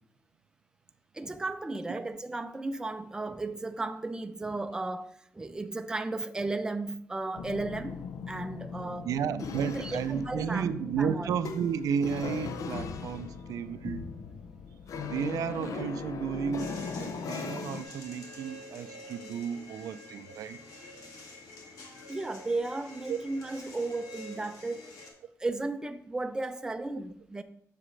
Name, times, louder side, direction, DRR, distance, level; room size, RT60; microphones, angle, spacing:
voice 1, 1.1-9.1 9.7-11.3 13.2-13.3 22.1-24.8 25.4-27.4, right 2 dB, 10° right, 0.4 m, -35 dB
sound 1, 7.4-17.8, left 5 dB, 65° left, 0.6 m, -39 dB
voice 2, 9.0-14.0 15.0-16.7 17.0-20.6 23.1-23.2, right 7 dB, 75° right, 0.4 m, -33 dB
sound 2, 16.6-25.1, left 1 dB, 90° left, 1.6 m, -47 dB
7.5 x 6.6 x 3.2 m
cardioid pair, 130°, 6 cm